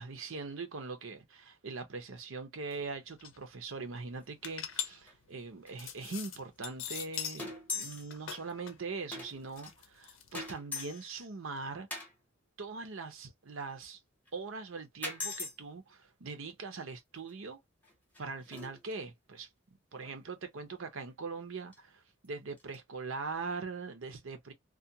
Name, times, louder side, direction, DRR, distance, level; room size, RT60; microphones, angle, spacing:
voice 1, 0.0-11.9 12.6-14.0 14.3-17.6 18.2-19.5 19.9-24.5, right 4 dB, 80° right, 0.7 m, -41 dB
sound 1, 2.7-2.8 3.0-3.4 3.9-7.5 7.8-10.5, left 9 dB, 80° left, 0.6 m, -42 dB
sound 2, 4.1-4.4 4.7-4.8 5.1-5.2 5.7-5.8 6.6-6.7 7.0-7.1 7.4-8.2 8.5-8.6 9.1-9.7 10.3-11.2 11.9-12.1 14.3-14.4 15.0-15.5 17.3-17.4 17.8-18.9 19.9-20.2 21.7-21.8 22.2-22.3 22.6-22.8, left 3 dB, 10° left, 0.7 m, -41 dB
2.4 x 2.2 x 2.7 m
head